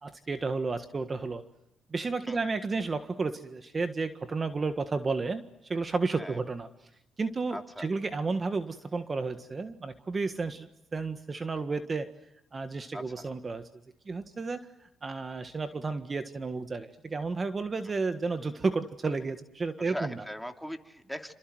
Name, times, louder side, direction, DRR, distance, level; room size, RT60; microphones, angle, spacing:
voice 1, 0.0-1.4 1.9-6.7 7.2-12.1 12.5-13.7 14.0-14.7 15.0-20.2, right 4 dB, 30° right, 9 dB, 1.6 m, -32 dB
voice 2, 7.5-7.9 12.9-13.3 17.8-17.9 19.8-21.3, equal, ahead, 5 dB, 2.8 m, -39 dB
28.0 x 27.0 x 7.9 m, 0.90 s
cardioid pair, 90°, 0 cm